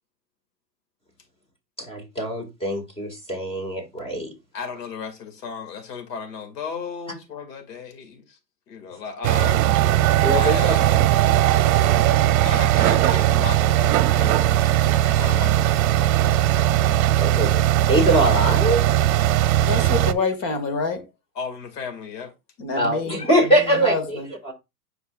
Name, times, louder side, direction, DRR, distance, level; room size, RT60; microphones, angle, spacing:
voice 1, 1.8-4.3 10.2-10.7 17.2-18.8 22.7-24.5, right 1 dB, 10° left, 2.1 m, -23 dB
voice 2, 4.5-8.4 8.7-9.7 10.3-10.9 12.4-14.4 14.8-16.5 21.3-22.3, left 5 dB, 75° left, 2.5 m, -35 dB
sound 1, 9.2-20.1, right 13 dB, 55° right, 0.8 m, -19 dB
voice 3, 19.6-21.0 22.6-23.3 23.8-24.3, left 4 dB, 40° left, 1.9 m, -26 dB
10.0 x 4.7 x 2.5 m
supercardioid pair, 135°, 49 cm